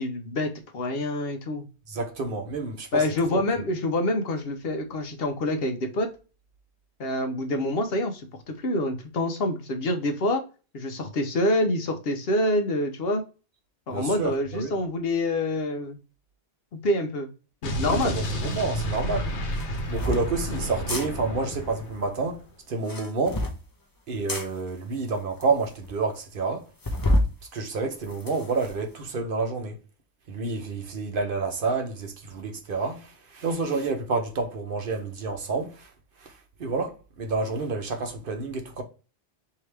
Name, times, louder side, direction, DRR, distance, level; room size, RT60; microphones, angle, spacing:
voice 1, 0.0-1.7 2.9-6.1 7.0-10.4 10.7-13.2 13.9-16.0 16.8-17.3 17.6-18.2, left 1 dB, 65° left, 0.9 m, -26 dB
voice 2, 1.9-3.0 3.3-3.4 13.9-14.8 17.8-19.3 19.9-22.4 22.7-23.4 24.1-26.6 27.5-29.8 30.3-35.8 36.6-38.8, right 4 dB, 55° right, 0.9 m, -29 dB
Explosion, 17.6-22.4, equal, 85° left, 1.1 m, -31 dB
sound 1, 18.5-18.6 19.5-20.2 20.8-21.1 22.7-23.6 24.3-24.5 25.1-25.2 25.4-25.5 25.8-25.9 26.8-27.3 27.8-28.7, left 1 dB, 25° left, 0.6 m, -27 dB
4.6 x 2.8 x 3.2 m
omnidirectional pair, 1.1 m